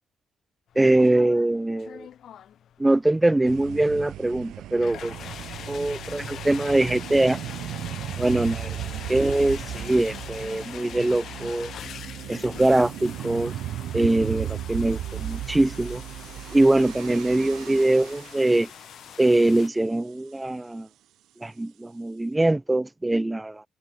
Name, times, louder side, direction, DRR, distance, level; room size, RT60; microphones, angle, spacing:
sound 1, 0.7-19.7, left 10 dB, 65° left, 3.8 m, -42 dB
voice 1, 0.7-2.1 2.8-5.1 5.7-7.4 8.2-8.8 9.1-11.7 12.3-13.5 13.9-16.0 16.5-18.7 19.2-20.9 21.4-23.6, right 2 dB, 15° right, 1.2 m, -22 dB
sound 2, 3.4-18.7, right 13 dB, 80° right, 0.9 m, -36 dB
cardioid pair, 90°, 0 cm